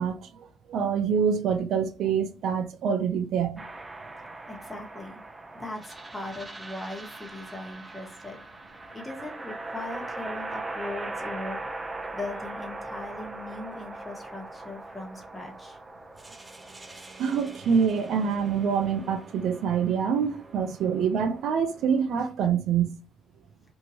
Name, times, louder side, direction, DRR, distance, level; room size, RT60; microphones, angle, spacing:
voice 1, 0.0-3.6 17.2-22.9, right 7 dB, 75° right, 0.4 m, -26 dB
sound 1, 3.6-22.2, right 2 dB, 25° right, 0.5 m, -41 dB
voice 2, 4.5-5.2 5.5-8.4 8.9-11.6 12.1-15.8, left 2 dB, 15° left, 1.3 m, -39 dB
2.8 x 2.6 x 2.8 m
supercardioid pair, 70°, 0 cm